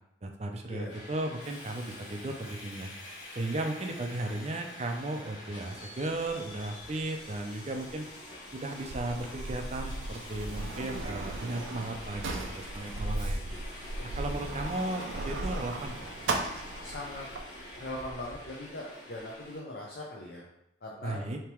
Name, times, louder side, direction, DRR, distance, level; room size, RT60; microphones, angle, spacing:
voice 1, 0.2-2.9 3.3-8.1 8.5-13.6 14.0-16.1 21.0-21.4, right 2 dB, 35° right, 4 dB, 0.5 m, -35 dB
Subway metro underground, 0.9-19.6, left 1 dB, 75° left, 1.2 m, -46 dB
Sliding door, 8.8-17.4, right 2 dB, 85° right, 0.5 m, -36 dB
voice 2, 14.0-14.6 16.8-17.2 17.8-20.4 20.8-21.2, left 1 dB, 55° left, -3 dB, 0.6 m, -41 dB
3.6 x 2.9 x 4.4 m, 0.84 s
head